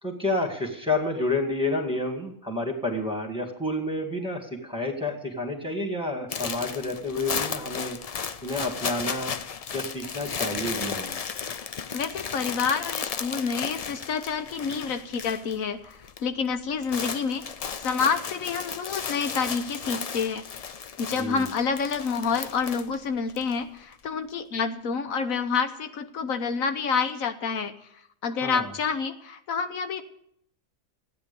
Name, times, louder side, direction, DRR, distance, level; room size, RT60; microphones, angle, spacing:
voice 1, 0.0-8.0 8.4-9.3 9.7-11.2 21.1-21.5 28.3-28.7, left 2 dB, 5° right, 3 dB, 2.0 m, -29 dB
sound 1, 6.3-15.6 15.8-16.2 16.5-23.5, left 6 dB, 65° left, 0.3 m, -34 dB
voice 2, 11.9-17.5 17.8-20.4 21.0-27.7 28.2-30.0, left 5 dB, 85° left, 8 dB, 1.4 m, -28 dB
15.0 x 9.6 x 6.8 m, 0.71 s
omnidirectional pair, 1.4 m